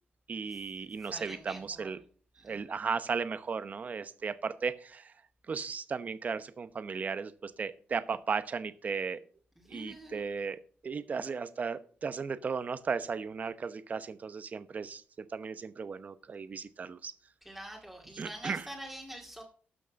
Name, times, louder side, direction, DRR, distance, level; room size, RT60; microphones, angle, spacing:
voice 1, 0.3-2.0 2.4-5.1 5.5-9.2 9.7-17.1 18.2-18.7, right 5 dB, 40° right, 13 dB, 0.9 m, -36 dB
voice 2, 1.1-1.9 2.4-2.6 9.6-10.2 17.4-19.4, right 1 dB, 5° right, -1 dB, 2.2 m, -45 dB
12.5 x 6.3 x 5.2 m, 0.43 s
cardioid pair, 120°, 4 cm